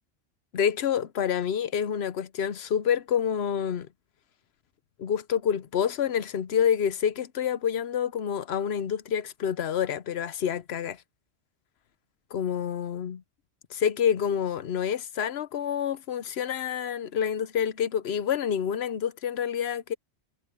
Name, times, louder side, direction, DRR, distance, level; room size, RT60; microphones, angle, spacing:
voice 1, 0.5-3.9 5.0-11.0 12.3-13.2 13.7-19.9, left 8 dB, 70° left, 1.0 m, -28 dB
omnidirectional pair, 1.1 m